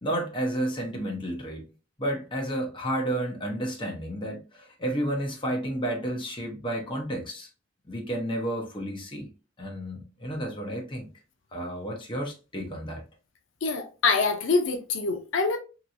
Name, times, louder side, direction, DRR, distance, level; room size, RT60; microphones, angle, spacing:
voice 1, 0.0-1.6 2.0-7.5 7.9-9.3 9.6-11.1 11.5-13.0, right 1 dB, 25° left, 0.8 m, -31 dB
voice 2, 13.6-15.6, left 4 dB, 80° left, 0.6 m, -25 dB
3.0 x 2.9 x 2.6 m
head